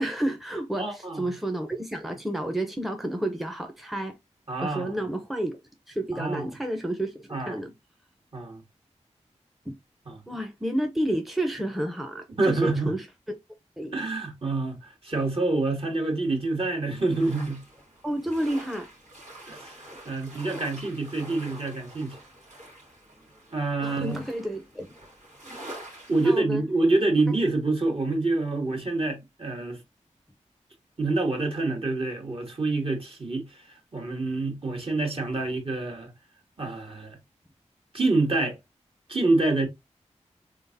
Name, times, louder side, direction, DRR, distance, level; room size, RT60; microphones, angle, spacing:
voice 1, 0.0-4.2 4.6-5.6 5.9-7.7 10.3-13.3 13.8-13.9 18.0-18.9 23.8-24.9 26.2-26.6, right 1 dB, ahead, 0.7 m, -30 dB
voice 2, 0.8-1.3 4.5-5.0 6.1-6.5 7.3-7.6 8.3-8.6 10.1-10.2 12.4-12.9 13.9-17.6 19.5-22.2 23.5-24.2 26.1-29.8 31.0-33.6 33.9-36.1 36.6-37.2 37.9-38.6 39.1-39.7, right 2 dB, 50° right, 1.8 m, -27 dB
sound 1, 16.9-26.4, right 1 dB, 85° right, 2.3 m, -46 dB
3.7 x 3.6 x 2.7 m
cardioid pair, 45°, 12 cm